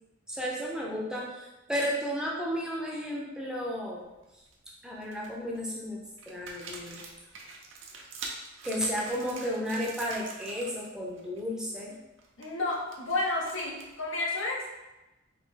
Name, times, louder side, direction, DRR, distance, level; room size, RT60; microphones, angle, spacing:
voice 1, 0.3-4.1 4.7-7.0 8.6-12.0, equal, 5° right, -3 dB, 0.6 m, -33 dB
sound 1, 4.1-4.5 5.0-5.6 6.2-10.9 11.1-11.4 11.8-14.0, right 3 dB, 75° right, 0.7 m, -45 dB
voice 2, 12.4-14.7, left 2 dB, 75° left, -2 dB, 0.9 m, -31 dB
4.1 x 2.8 x 3.7 m, 1.0 s
head